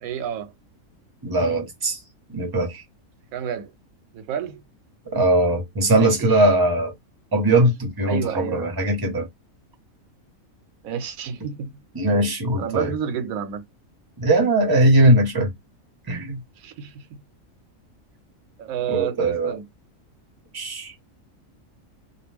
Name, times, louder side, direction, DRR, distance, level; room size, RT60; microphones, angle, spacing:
voice 1, 0.0-0.5 3.3-3.7 4.1-4.6 6.0-6.5 8.1-8.7 10.8-11.7 12.6-13.6 16.6-17.1 18.6-19.7, right 8 dB, 90° right, 1.1 m, -30 dB
voice 2, 1.2-2.0 2.3-2.8 5.1-6.9 7.3-9.3 11.9-12.9 14.2-15.5 16.1-16.4 18.9-19.5 20.5-20.9, right 1 dB, 20° right, 0.9 m, -20 dB
2.5 x 2.2 x 3.3 m
omnidirectional pair, 1.4 m